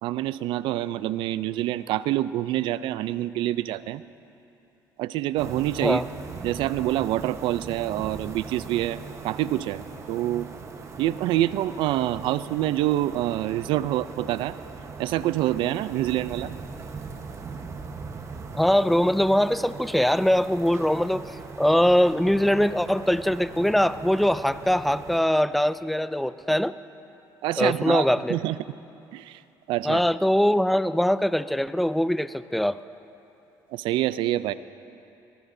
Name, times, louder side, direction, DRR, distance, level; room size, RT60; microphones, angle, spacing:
voice 1, 0.0-4.0 5.0-6.0 6.4-10.5 11.0-14.6 15.0-16.5 27.4-28.0 28.3-28.6 29.1-29.4 29.7-30.0 33.7-34.5, right 14 dB, 75° right, 16 dB, 0.4 m, -26 dB
sound 1, 5.4-25.2, right 4 dB, 35° right, 1.1 m, -40 dB
voice 2, 18.5-21.2 21.6-26.7 27.6-28.4 29.8-32.8, equal, ahead, 14 dB, 0.3 m, -22 dB
23.0 x 18.5 x 2.7 m, 2.9 s
cardioid pair, 100°, 8 cm